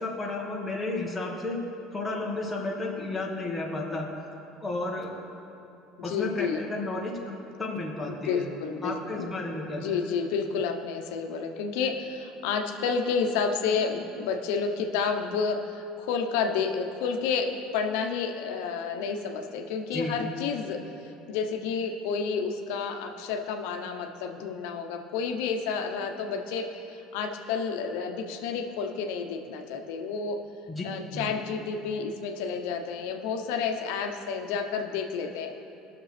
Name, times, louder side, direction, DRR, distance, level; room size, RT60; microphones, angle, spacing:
voice 1, 0.0-1.6 1.9-4.1 4.6-5.1 6.0-8.5 8.8-10.0 19.9-20.1 30.7-30.8 31.1-31.3, left 2 dB, 10° left, -3 dB, 1.4 m, -32 dB
voice 2, 6.0-6.6 8.1-9.3 9.8-30.4 30.8-35.6, left 5 dB, 90° left, 4 dB, 0.8 m, -30 dB
20.0 x 6.7 x 3.3 m, 2.9 s
cardioid pair, 155°, 0 cm